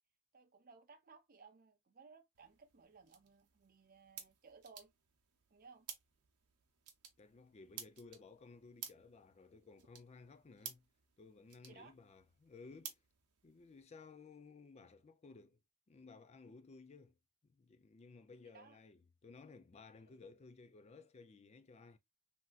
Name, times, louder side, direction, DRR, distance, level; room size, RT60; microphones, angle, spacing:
voice 1, 0.3-4.9 5.5-5.9 11.7-11.9 18.4-18.8 19.9-20.2, right 4 dB, 40° right, 0.5 m, -61 dB
sound 1, 2.3-13.8, right 9 dB, 90° right, 0.8 m, -55 dB
voice 2, 7.2-10.9 11.2-13.0 13.4-15.6 15.9-17.2 17.4-22.0, left 4 dB, 30° left, 0.3 m, -57 dB
3.3 x 2.7 x 2.3 m
head